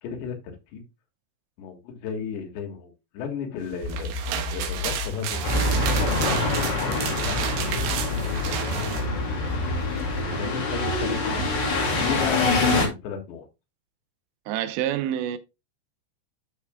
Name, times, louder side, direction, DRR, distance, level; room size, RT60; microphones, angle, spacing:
voice 1, 0.0-0.8 1.6-8.7 10.2-13.5, left 6 dB, 85° left, 4.0 m, -35 dB
sound 1, 3.7-9.1, right 9 dB, 70° right, 2.8 m, -31 dB
sound 2, 3.8-6.8 7.2-10.3, left 4 dB, 65° left, 3.9 m, -32 dB
sound 3, 5.4-12.9, left 2 dB, 35° left, 2.0 m, -25 dB
voice 2, 14.5-15.4, right 11 dB, 90° right, 3.1 m, -27 dB
11.5 x 6.0 x 2.2 m
omnidirectional pair, 4.9 m